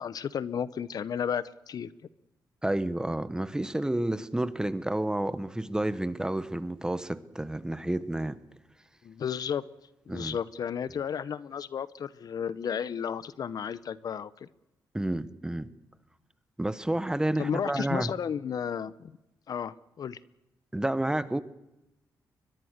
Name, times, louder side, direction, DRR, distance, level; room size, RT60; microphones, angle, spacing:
voice 1, 0.0-1.9 9.0-9.6 10.1-14.5 17.4-19.1 19.5-20.2, left 7 dB, 60° left, 0.8 m, -33 dB
voice 2, 2.6-8.4 10.1-10.4 14.9-15.7 16.6-18.1 20.7-21.4, right 1 dB, 10° right, 1.2 m, -30 dB
22.0 x 22.0 x 6.6 m
cardioid pair, 95°, 7 cm